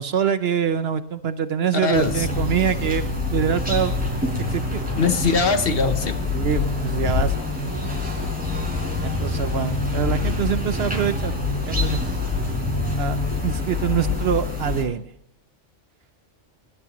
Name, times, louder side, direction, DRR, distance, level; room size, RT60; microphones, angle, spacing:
voice 1, 0.0-3.0 3.3-4.0 4.5-4.8 6.3-7.3 9.0-11.3 11.7-12.3 13.0-15.1, right 8 dB, 60° right, 12 dB, 0.9 m, -25 dB
voice 2, 1.8-2.3 5.0-6.3 13.5-13.9, left 4 dB, 55° left, 9 dB, 1.0 m, -22 dB
sound 1, 1.9-14.8, left 3 dB, 5° right, 4.4 m, -25 dB
19.5 x 11.0 x 3.0 m, 0.72 s
omnidirectional pair, 1.3 m